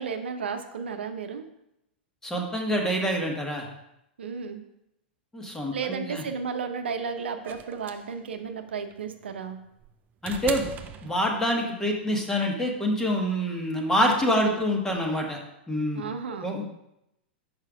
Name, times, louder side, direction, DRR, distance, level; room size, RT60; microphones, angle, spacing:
voice 1, 0.0-1.4 4.2-4.6 5.7-9.6 14.2-14.6 15.9-16.5, right 6 dB, 80° right, 6 dB, 0.7 m, -33 dB
voice 2, 2.2-3.7 5.3-6.2 10.2-10.7 11.0-15.4 15.7-16.0 16.4-16.7, equal, 10° left, 1 dB, 1.4 m, -26 dB
sound 1, 7.4-11.7 13.0-13.1, right 9 dB, 30° right, 0.6 m, -40 dB
5.6 x 5.3 x 5.0 m, 0.82 s
hypercardioid pair, 110°, 6 cm